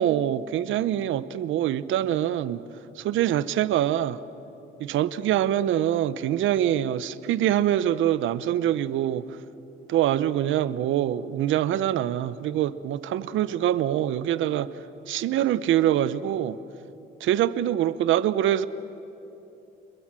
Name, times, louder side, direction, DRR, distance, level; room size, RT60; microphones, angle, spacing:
voice 1, 0.0-2.6 3.0-4.2 4.8-9.3 9.9-14.7 15.1-16.6 17.2-18.7, right 11 dB, 80° right, 16 dB, 0.8 m, -24 dB
29.0 x 21.5 x 7.5 m, 2.9 s
cardioid pair, 90°, 20 cm